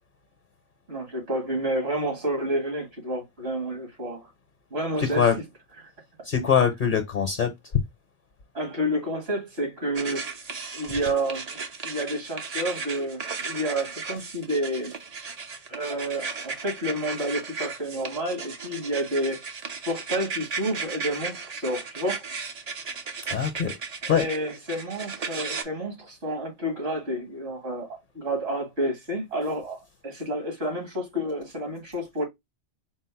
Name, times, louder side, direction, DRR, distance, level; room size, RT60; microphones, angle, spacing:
voice 1, 0.9-4.3 4.7-5.3 8.5-10.2 10.7-11.4 11.8-14.9 15.7-19.4 19.9-22.2 24.1-27.9 28.1-32.2, right 1 dB, 65° right, 2.0 m, -29 dB
voice 2, 5.0-5.3 6.3-7.5 23.3-23.7 24.1-24.3, left 7 dB, 50° left, 0.9 m, -23 dB
sound 1, 9.9-25.6, right 5 dB, 40° right, 0.7 m, -35 dB
4.6 x 2.1 x 4.3 m
omnidirectional pair, 1.1 m